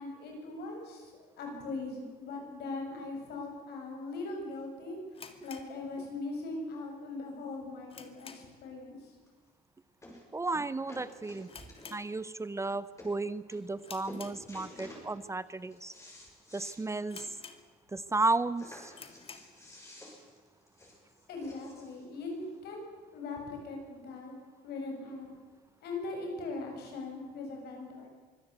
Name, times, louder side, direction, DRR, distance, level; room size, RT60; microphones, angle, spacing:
voice 1, 0.0-5.0 5.4-9.1 21.3-22.8 23.1-24.4 24.6-25.3 25.8-28.1, left 3 dB, 70° left, 2 dB, 7.6 m, -40 dB
sound 1, 5.1-6.5 6.8-6.9 7.4-8.7 9.0-9.3 9.6-9.7 10.4-10.7 10.9-11.0 11.4-12.6 13.0-13.3 13.8-14.9 15.5-15.6 16.2-16.3 16.5-16.6 17.1-18.0 18.4-18.5 18.9-19.6, left 5 dB, 35° left, 2.2 m, -51 dB
sound 2, 9.3-9.4 10.0-10.3 10.5-12.1 12.7-12.8 13.0-13.1 13.5-13.8 14.1-15.1 15.5-16.8 17.2-17.3 17.6-17.7 18.6-22.0 22.8-22.9, left 1 dB, 15° left, 7.0 m, -50 dB
voice 2, 10.3-11.5 11.9-15.9 16.5-17.2 17.9-18.9, right 3 dB, 15° right, 16 dB, 0.7 m, -33 dB
24.5 x 16.0 x 8.3 m, 1.4 s
cardioid pair, 110°, 17 cm